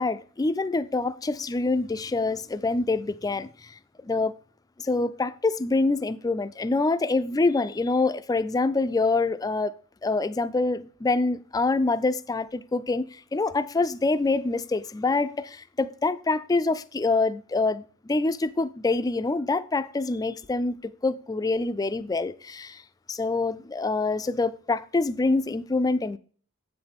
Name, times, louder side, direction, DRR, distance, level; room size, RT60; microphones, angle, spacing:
voice 1, 0.0-4.4 4.8-9.7 10.0-22.8 23.1-26.2, left 3 dB, 15° left, 0.3 m, -26 dB
8.1 x 7.9 x 3.5 m
head